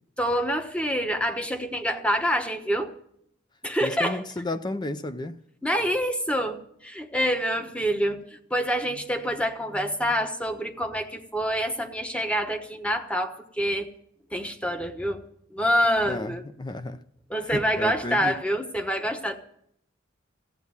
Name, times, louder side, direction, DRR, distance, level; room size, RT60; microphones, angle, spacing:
voice 1, 0.2-2.9 3.6-4.2 5.6-13.9 14.3-15.2 15.5-16.4 17.3-19.4, equal, 5° left, 1.1 m, -26 dB
voice 2, 3.8-5.4 16.1-17.0 17.4-18.3, left 2 dB, 20° left, 0.5 m, -32 dB
15.0 x 8.3 x 9.5 m
head